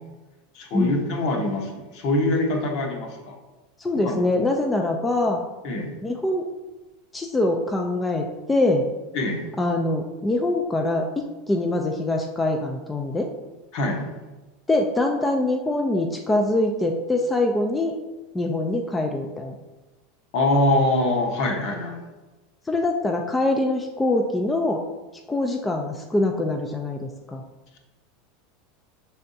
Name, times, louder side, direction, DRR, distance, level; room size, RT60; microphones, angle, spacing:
voice 1, 0.5-3.3 4.0-4.2 5.6-5.9 9.1-9.4 13.7-14.0 20.3-22.0, left 1 dB, 55° left, 1 dB, 1.0 m, -24 dB
voice 2, 3.8-5.4 6.0-6.5 7.1-8.9 9.6-13.3 14.7-17.9 18.3-19.5 22.7-24.8 25.3-27.4, left 2 dB, 10° left, 2 dB, 0.4 m, -24 dB
5.3 x 3.4 x 2.7 m, 1.2 s
supercardioid pair, 120°, 0 cm